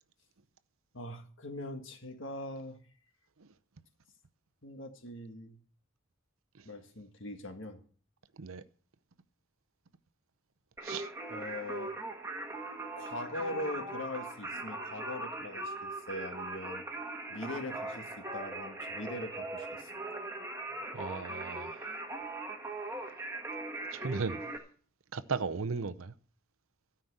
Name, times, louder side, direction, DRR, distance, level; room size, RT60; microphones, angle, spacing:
voice 1, 0.9-2.9 4.6-5.6 6.7-7.8 11.3-12.0 13.0-16.9 17.3-19.9, left 1 dB, 60° left, 1.7 m, -41 dB
Singing, 10.8-24.6, right 2 dB, 15° right, 1.4 m, -40 dB
voice 2, 20.9-21.9 23.9-24.4 25.1-26.1, right 4 dB, 80° right, 0.7 m, -36 dB
13.0 x 5.8 x 8.0 m
head